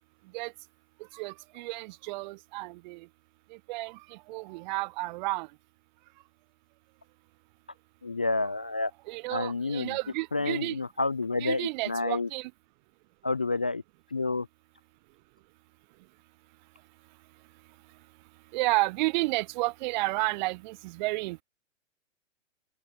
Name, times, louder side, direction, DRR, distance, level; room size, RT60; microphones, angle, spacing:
voice 1, 1.1-3.0 3.7-4.0 4.3-5.5 9.1-10.8 11.4-12.5 18.5-21.4, right 22 dB, 35° right, 5.6 m, -31 dB
voice 2, 8.0-8.9 9.3-10.0 10.3-12.3 13.2-13.8 14.1-14.5, left 3 dB, 5° left, 0.3 m, -29 dB
open air
figure-of-eight pair, 115°, 39 cm